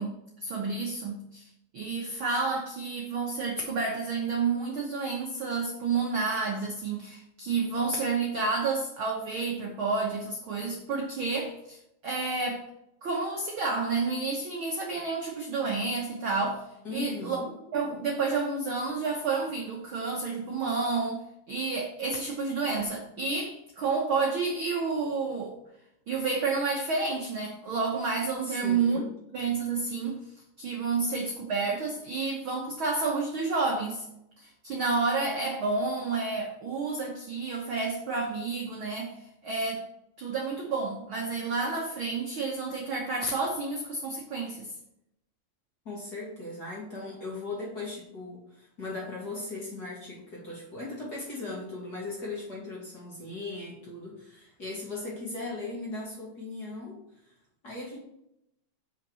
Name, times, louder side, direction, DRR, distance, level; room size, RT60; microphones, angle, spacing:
voice 1, 0.0-1.5 1.7-11.8 12.0-12.6 13.0-16.6 16.9-17.4 17.7-21.2 21.5-25.5 26.1-29.0 29.3-30.2 30.6-34.0 34.4-39.2 39.4-39.8 40.2-44.7, right 4 dB, 60° right, -1 dB, 1.4 m, -30 dB
voice 2, 16.8-17.6 28.4-29.1 45.8-57.3 57.6-58.0, left 2 dB, 35° left, -4 dB, 2.2 m, -38 dB
6.7 x 5.8 x 6.2 m, 0.80 s
omnidirectional pair, 3.9 m